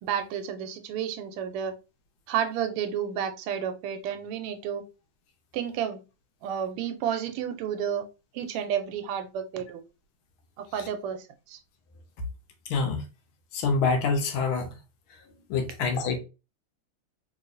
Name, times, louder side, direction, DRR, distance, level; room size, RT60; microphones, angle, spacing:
voice 1, 0.0-1.7 2.3-4.8 5.5-6.0 6.4-8.0 8.3-9.8 10.6-11.6, right 8 dB, 85° right, 1.5 m, -31 dB
voice 2, 12.7-13.0 13.5-14.7 15.5-16.2, left 4 dB, 75° left, 1.5 m, -26 dB
3.4 x 3.0 x 2.5 m
omnidirectional pair, 2.4 m